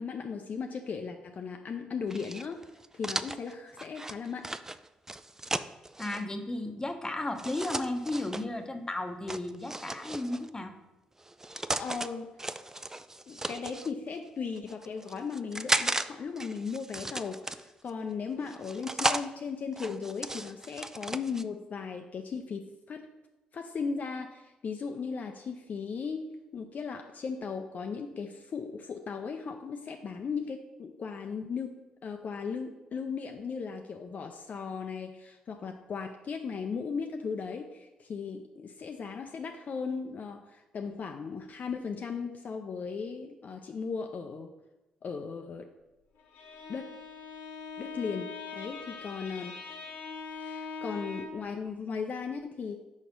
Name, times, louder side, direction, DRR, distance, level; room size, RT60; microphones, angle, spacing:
voice 1, 0.0-2.7 2.9-4.5 11.8-12.4 13.3-23.1 23.5-44.5 45.0-45.7 46.7-47.0 47.8-49.6 50.3-52.8, left 5 dB, 50° left, 4 dB, 0.5 m, -37 dB
sound 1, 2.1-6.2 7.4-8.4 9.3-10.5 11.2-12.1 12.4-13.9 14.6-16.1 16.4-17.9 18.5-19.3 19.7-21.4, right 2 dB, 15° right, 0.3 m, -35 dB
voice 2, 6.0-10.7, left 2 dB, 20° left, 6 dB, 0.8 m, -34 dB
Bowed string instrument, 46.2-51.5, left 4 dB, 70° left, 1.0 m, -42 dB
4.8 x 4.2 x 5.4 m, 1.0 s
hypercardioid pair, 40°, 3 cm